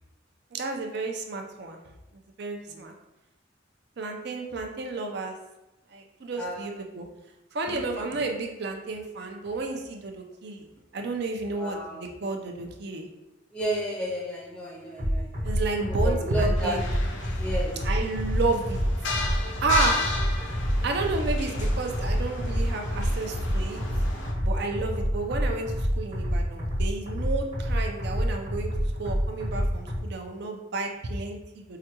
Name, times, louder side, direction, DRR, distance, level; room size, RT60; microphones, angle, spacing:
voice 1, 0.5-1.8 2.1-2.9 4.0-5.4 5.9-7.1 7.5-10.7 10.9-13.1 15.4-16.8 17.8-18.8 19.6-20.2 20.8-23.8 24.4-28.7 29.0-31.8, right 3 dB, 60° right, 3 dB, 0.5 m, -31 dB
voice 2, 6.3-6.7 7.7-8.0 11.5-12.1 13.5-15.6 15.8-16.8 17.4-17.8, right 1 dB, 5° left, -4 dB, 0.6 m, -32 dB
sound 1, 15.0-30.0, equal, 40° right, 1.1 m, -27 dB
sound 2, 16.6-24.3, left 3 dB, 65° left, 0.6 m, -34 dB
4.8 x 2.2 x 2.9 m, 0.95 s
head